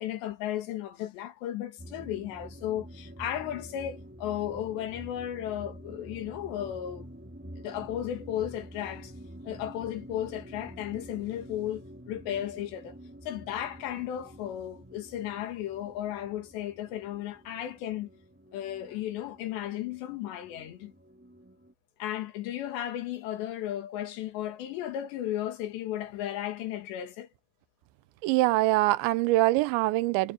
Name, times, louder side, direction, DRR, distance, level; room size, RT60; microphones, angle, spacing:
voice 1, 0.0-7.1 7.6-9.1 9.5-13.0 13.2-18.1 18.5-20.9 22.0-27.3, left 11 dB, 75° left, 4.1 m, -35 dB
sound 1, 1.8-21.7, equal, 5° right, 2.0 m, -48 dB
voice 2, 28.2-30.3, right 18 dB, 90° right, 3.1 m, -24 dB
omnidirectional pair, 5.1 m